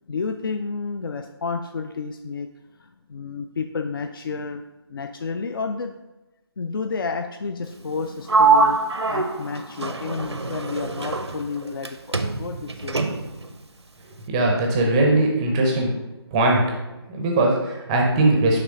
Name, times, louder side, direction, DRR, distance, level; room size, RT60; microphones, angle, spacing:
voice 1, 0.1-2.5 2.8-4.6 4.9-6.0 6.6-13.0 17.1-17.2, left 4 dB, 55° left, 7 dB, 0.4 m, -31 dB
Sliding door, 8.3-11.9 12.1-13.5, right 4 dB, 85° right, 0.6 m, -23 dB
voice 2, 14.3-15.9 16.3-16.7 17.1-18.6, right 2 dB, 10° right, 0 dB, 0.5 m, -20 dB
5.9 x 3.3 x 5.0 m, 1.0 s
figure-of-eight pair, 150°, 14 cm